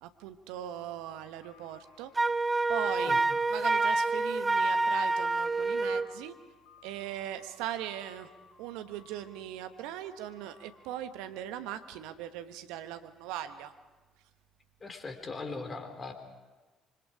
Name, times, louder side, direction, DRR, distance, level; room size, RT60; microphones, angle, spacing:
voice 1, 0.0-2.1 2.7-3.2 3.5-6.3 6.8-8.3 8.6-13.7, right 11 dB, 70° right, 9 dB, 1.2 m, -39 dB
sound 1, 1.4-11.1, left 5 dB, 75° left, 2.0 m, -60 dB
Wind instrument woodwind instrument, 2.2-6.1, right 3 dB, 20° right, 0.6 m, -27 dB
voice 2, 14.8-16.1, left 3 dB, 35° left, 7 dB, 3.6 m, -39 dB
26.5 x 25.0 x 5.0 m, 1.2 s
hypercardioid pair, 50°, 0 cm